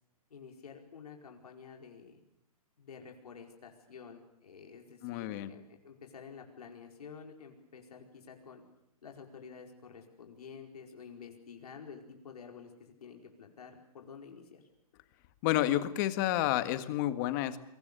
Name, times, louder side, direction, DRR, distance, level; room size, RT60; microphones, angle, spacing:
voice 1, 0.3-2.2 2.8-8.6 9.0-14.6, left 6 dB, 90° left, 2 dB, 4.9 m, -50 dB
voice 2, 5.0-5.5 15.4-17.6, left 14 dB, 30° left, 11 dB, 1.7 m, -30 dB
30.0 x 23.5 x 6.9 m, 0.76 s
hypercardioid pair, 160°, 19 cm